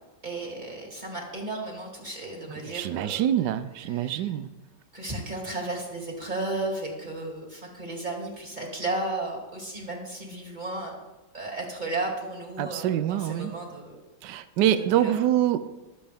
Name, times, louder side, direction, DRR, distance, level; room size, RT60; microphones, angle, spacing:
voice 1, 0.2-3.3 3.9-4.3 4.9-10.9 11.3-13.9 14.7-15.1, right 2 dB, 25° right, 0 dB, 2.7 m, -34 dB
voice 2, 2.6-4.5 12.6-13.6 14.2-15.6, right 11 dB, 80° right, 12 dB, 1.2 m, -25 dB
22.5 x 7.8 x 3.5 m, 1.1 s
omnidirectional pair, 1.8 m